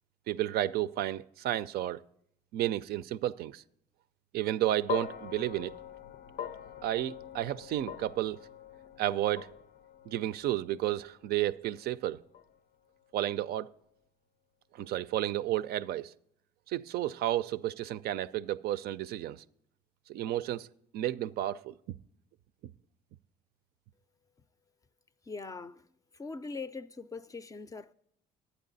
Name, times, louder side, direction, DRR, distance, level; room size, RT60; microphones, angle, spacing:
voice 1, 0.3-2.0 2.5-3.6 4.3-5.8 6.8-8.4 9.0-9.5 10.1-12.2 13.1-13.7 14.7-16.1 16.7-19.4 20.1-20.7 20.9-22.0 22.6-22.7, right 13 dB, 65° right, 0.4 m, -32 dB
sound 1, 4.9-13.2, left 9 dB, 75° left, 0.6 m, -44 dB
voice 2, 25.3-25.9 26.1-27.9, left 4 dB, 20° left, 0.4 m, -41 dB
11.5 x 9.0 x 3.9 m
cardioid pair, 110°, 17 cm